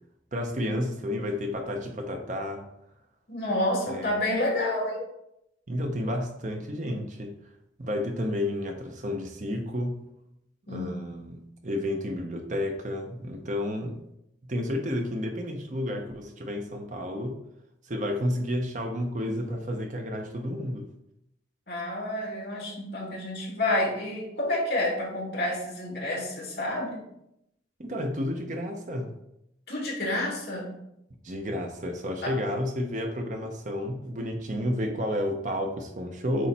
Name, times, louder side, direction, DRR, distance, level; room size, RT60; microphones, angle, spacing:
voice 1, 0.3-2.7 3.9-4.2 5.7-7.4 7.8-10.0 10.7-14.0 14.4-17.4 17.8-20.9 27.8-29.1 31.2-36.5, left 1 dB, 40° right, 4 dB, 0.8 m, -31 dB
voice 2, 3.3-5.1 10.7-10.9 21.7-27.0 29.7-30.7 32.2-32.3, left 1 dB, 60° left, -3 dB, 2.6 m, -29 dB
8.3 x 3.1 x 4.3 m, 0.80 s
head